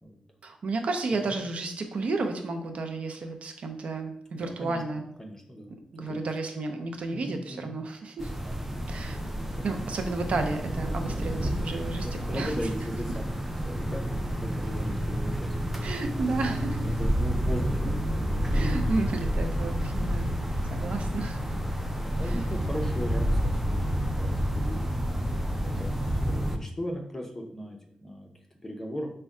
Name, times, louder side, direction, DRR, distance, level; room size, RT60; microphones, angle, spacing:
voice 1, 0.4-5.0 5.9-8.3 8.9-9.2 9.6-12.5 15.8-16.9 18.5-20.3 20.7-21.4 22.2-22.4, right 3 dB, 65° right, 5 dB, 0.5 m, -32 dB
voice 2, 4.3-4.8 5.2-6.3 7.1-7.8 9.2-9.8 10.3-10.5 11.9-15.9 16.7-18.0 20.1-20.4 22.0-24.8 25.4-28.3 28.6-29.1, equal, 15° left, 0 dB, 0.8 m, -38 dB
sound 1, 8.2-26.6, equal, 10° right, 0.5 m, -29 dB
5.2 x 2.2 x 3.6 m, 0.73 s
wide cardioid pair, 100°, 2 cm